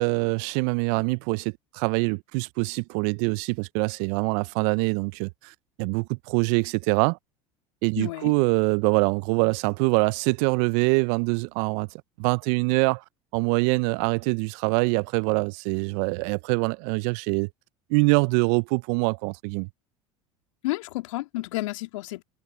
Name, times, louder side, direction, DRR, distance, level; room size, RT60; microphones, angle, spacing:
voice 1, 0.0-7.2 7.8-11.9 12.2-13.0 13.3-17.5 17.9-19.7, right 31 dB, 60° right, 0.7 m, -24 dB
voice 2, 8.0-8.3 20.6-22.2, left 19 dB, 70° left, 3.4 m, -31 dB
hypercardioid pair, 75°, 17 cm